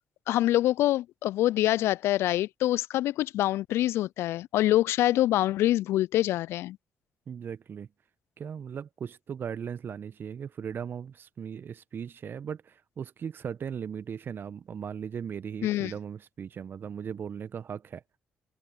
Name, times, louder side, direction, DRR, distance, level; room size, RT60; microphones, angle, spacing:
voice 1, 0.3-6.8 15.6-15.9, left 14 dB, 65° left, 0.6 m, -25 dB
voice 2, 7.3-7.9 8.4-18.0, right 7 dB, 50° right, 1.5 m, -38 dB
figure-of-eight pair, 45°, 5 cm